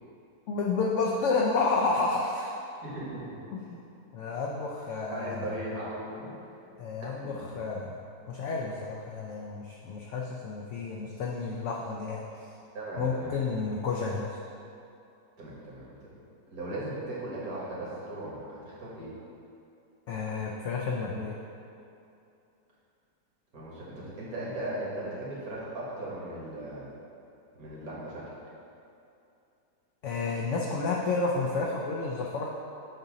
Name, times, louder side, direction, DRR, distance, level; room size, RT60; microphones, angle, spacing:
voice 1, 0.5-2.5 3.5-3.6 4.1-5.5 6.8-8.0 8.3-12.5 13.0-14.4 20.1-21.4 30.0-32.5, left 4 dB, 85° left, -2 dB, 0.6 m, -30 dB
voice 2, 2.8-3.4 5.1-6.3 12.7-13.3 13.6-13.7 15.4-16.1 16.5-19.1 23.5-26.9 27.6-28.3, right 1 dB, 60° right, -7 dB, 1.8 m, -38 dB
7.6 x 2.7 x 4.9 m, 2.7 s
omnidirectional pair, 1.8 m